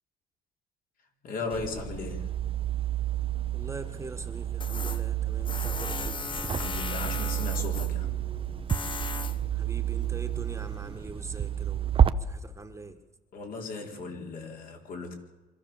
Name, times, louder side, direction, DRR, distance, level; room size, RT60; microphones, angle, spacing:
voice 1, 1.2-2.4 6.6-8.2 13.3-15.2, left 4 dB, 60° left, 2 dB, 4.5 m, -37 dB
sound 1, 1.5-12.1, right 10 dB, 35° right, 0.9 m, -30 dB
voice 2, 3.5-6.2 9.5-13.0, right 3 dB, 15° right, 7 dB, 1.6 m, -43 dB
Tools, 4.6-10.8, left 4 dB, 30° left, 1.3 m, -38 dB
25.0 x 14.5 x 7.3 m, 1.2 s
cardioid pair, 110°, 17 cm